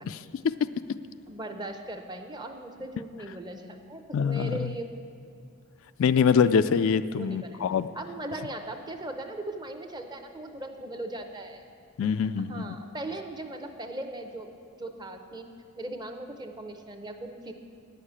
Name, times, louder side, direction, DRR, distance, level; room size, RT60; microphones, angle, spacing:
voice 1, 1.3-4.9 7.1-7.6 7.9-11.7 12.4-14.5 14.8-15.5 15.8-17.5, right 1 dB, 20° right, 5 dB, 0.6 m, -38 dB
voice 2, 4.1-4.7 6.0-7.9 12.0-12.6, left 6 dB, 60° left, 12 dB, 0.3 m, -24 dB
9.7 x 6.5 x 8.6 m, 2.5 s
head